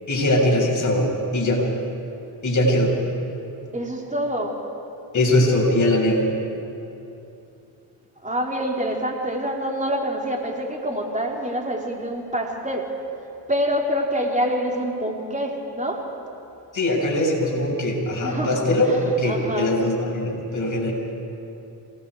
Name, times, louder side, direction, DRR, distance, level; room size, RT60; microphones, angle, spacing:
voice 1, 0.1-1.6 2.4-2.9 5.1-6.3 16.7-20.9, left 1 dB, 35° left, -2 dB, 6.6 m, -21 dB
voice 2, 3.7-4.6 8.2-13.0 13.5-16.1 18.2-19.8, equal, 15° right, 0 dB, 3.7 m, -26 dB
27.5 x 19.5 x 4.9 m, 2.8 s
supercardioid pair, 65°, 49 cm